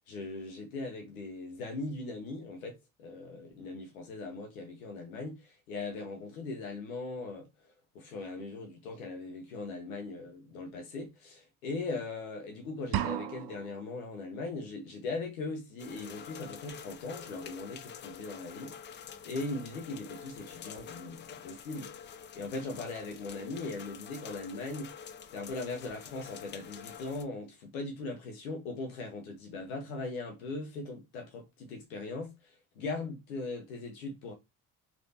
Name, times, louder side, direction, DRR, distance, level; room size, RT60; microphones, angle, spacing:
voice 1, 0.1-7.5 7.9-18.8 19.2-21.9 22.4-24.9 25.3-32.3 32.8-34.3, left 3 dB, 90° left, 1.0 m, -39 dB
sound 1, 12.9-13.9, right 12 dB, 60° right, 0.5 m, -34 dB
sound 2, 15.8-27.2, left 8 dB, 30° left, 0.3 m, -47 dB
3.3 x 2.8 x 2.7 m
hypercardioid pair, 60°, 42 cm